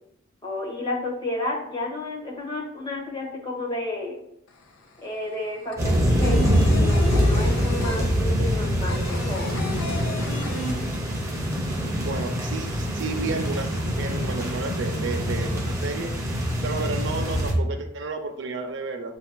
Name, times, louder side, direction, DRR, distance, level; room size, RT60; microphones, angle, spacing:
voice 1, 0.4-4.2 5.0-9.7, left 2 dB, 25° left, -2 dB, 1.0 m, -31 dB
sound 1, 4.5-4.6 4.8-11.4 11.7-11.8 12.1-12.9, left 1 dB, 85° left, 0.6 m, -34 dB
sound 2, 5.8-17.5, equal, 15° right, 0.7 m, -24 dB
voice 2, 11.9-19.2, right 3 dB, 60° right, 6 dB, 0.5 m, -32 dB
7.3 x 2.7 x 2.2 m, 0.78 s
head